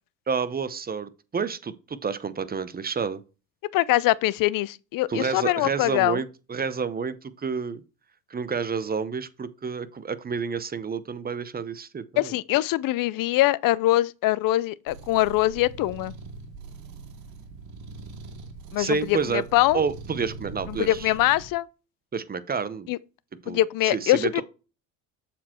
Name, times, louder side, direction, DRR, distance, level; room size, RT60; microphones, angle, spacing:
voice 1, 0.3-3.2 5.1-7.8 8.3-12.3 18.8-19.4 19.7-21.1 22.1-22.9 23.4-24.4, right 5 dB, 25° right, 0.8 m, -29 dB
voice 2, 3.7-6.2 12.2-16.1 18.7-19.8 20.7-21.7 22.9-23.0 23.5-24.4, left 16 dB, 65° left, 0.5 m, -23 dB
sound 1, 14.9-21.5, right 4 dB, 80° right, 1.7 m, -42 dB
7.2 x 4.4 x 4.4 m
supercardioid pair, 80°, 37 cm